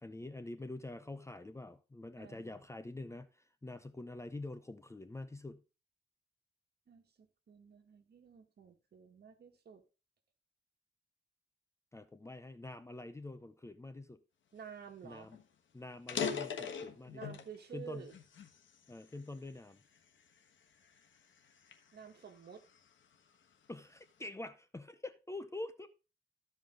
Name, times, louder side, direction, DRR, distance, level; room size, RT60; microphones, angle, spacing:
voice 1, 0.0-5.6 11.9-14.2 15.0-15.4 15.7-17.2 17.7-18.1 18.9-19.8 23.7-25.9, left 2 dB, 15° left, 0.5 m, -46 dB
voice 2, 2.2-2.6 6.9-9.8 14.5-15.3 17.1-18.2 21.9-22.6, right 7 dB, 55° right, 1.7 m, -51 dB
sound 1, 14.9-15.0 15.3-15.4 15.9-17.6 18.1-19.4 20.0-20.2 20.8-22.9, left 6 dB, 80° left, 1.3 m, -40 dB
14.0 x 5.2 x 3.8 m
wide cardioid pair, 125°, 19 cm